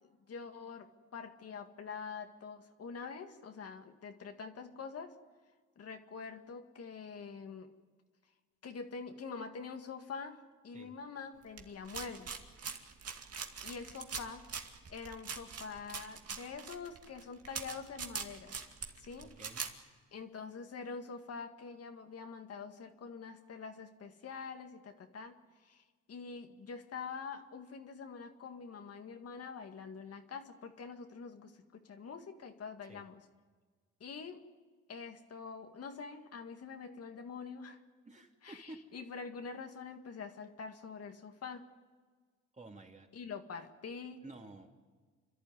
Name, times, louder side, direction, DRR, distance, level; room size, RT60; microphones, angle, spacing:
voice 1, 0.0-5.1 5.8-7.7 8.6-12.3 13.6-14.4 14.9-18.5 19.0-19.4 20.1-33.3 34.0-34.4 34.9-37.8 38.4-41.6 43.1-44.2, left 5 dB, 55° left, 5 dB, 1.8 m, -45 dB
sound 1, 11.6-19.7, right 6 dB, 55° right, 2.3 m, -43 dB
voice 2, 19.2-19.7 32.9-33.0 38.1-38.9 42.6-43.1 44.2-44.8, right 2 dB, 25° right, 2 dB, 2.9 m, -51 dB
29.5 x 12.0 x 9.6 m, 1.5 s
cardioid pair, 90°, 30 cm